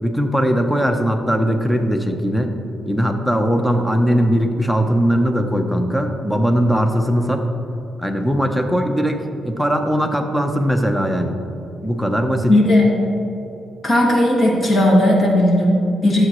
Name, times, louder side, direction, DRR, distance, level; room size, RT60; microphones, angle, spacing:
voice 1, 0.0-2.5 2.8-7.4 8.0-11.4 11.8-12.6, equal, 5° left, 5 dB, 0.8 m, -19 dB
voice 2, 12.5-12.9 13.8-16.3, left 1 dB, 35° left, -3 dB, 2.2 m, -15 dB
12.5 x 7.6 x 3.1 m, 2.9 s
cardioid pair, 100°, 0 cm